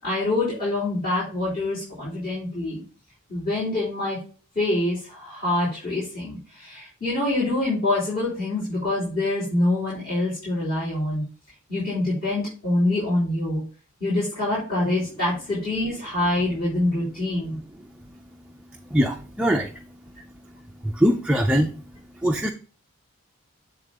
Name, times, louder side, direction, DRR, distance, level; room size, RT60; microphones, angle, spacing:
voice 1, 0.0-2.8 3.3-4.2 4.5-11.2 11.7-13.6 14.0-17.6, left 2 dB, 40° left, -9 dB, 4.3 m, -25 dB
voice 2, 18.9-19.8 20.8-21.7 22.2-22.5, equal, 5° right, 2 dB, 0.4 m, -22 dB
7.9 x 3.6 x 5.3 m, 0.38 s
head